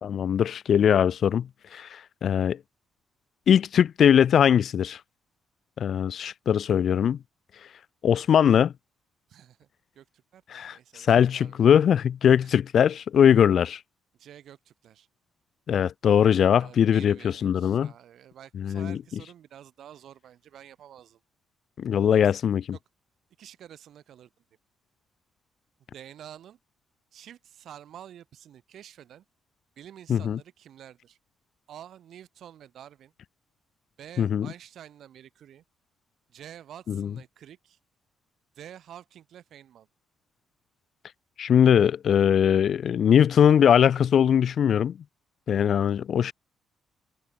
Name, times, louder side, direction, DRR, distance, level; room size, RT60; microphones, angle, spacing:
voice 1, 0.0-1.5 1.7-2.6 3.5-5.0 5.8-7.2 8.0-8.7 10.5-10.8 11.1-13.8 15.7-17.9 18.6-19.0 21.8-22.6 30.1-30.4 34.2-34.5 36.9-37.1 41.4-45.0 45.5-46.3, left 8 dB, 60° left, 0.3 m, -21 dB
voice 2, 9.3-9.7 9.9-11.6 12.4-12.6 14.2-15.1 16.6-21.2 22.1-22.4 22.7-22.8 23.4-24.3 25.9-26.6 27.1-29.2 29.8-31.2 31.7-33.1 34.0-35.6 36.3-37.8 38.5-39.9, right 10 dB, 70° right, 4.5 m, -48 dB
cardioid pair, 90°, 0 cm